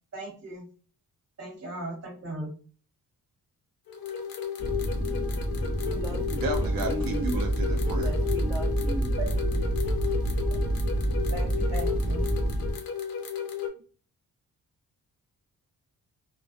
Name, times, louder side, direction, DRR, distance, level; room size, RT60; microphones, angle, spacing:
voice 1, 0.1-0.7 1.4-2.5 5.9-6.1 9.2-9.6 11.3-12.2, right 2 dB, 45° right, 1.2 m, -38 dB
sound 1, 3.9-13.7, left 8 dB, 90° left, 0.6 m, -34 dB
sound 2, 4.6-12.7, equal, 30° right, 0.9 m, -30 dB
voice 2, 5.9-6.5 6.9-7.2 7.9-9.1, right 1 dB, 10° right, 0.4 m, -37 dB
voice 3, 6.4-8.1, right 2 dB, 75° right, 0.5 m, -33 dB
sound 3, 6.5-12.7, right 2 dB, 15° left, 0.8 m, -30 dB
2.3 x 2.2 x 2.4 m
wide cardioid pair, 130°, 35 cm